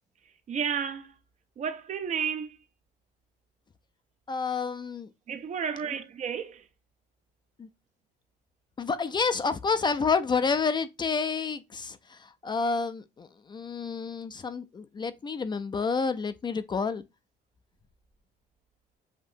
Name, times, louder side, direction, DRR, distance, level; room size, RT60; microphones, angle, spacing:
voice 1, 0.5-1.1 1.6-2.6 5.3-6.6, right 7 dB, 45° right, 0.7 m, -32 dB
voice 2, 4.3-5.1 7.6-7.7 8.8-17.0, left 5 dB, 25° left, 0.4 m, -29 dB
7.2 x 2.7 x 2.6 m
cardioid pair, 110°, 17 cm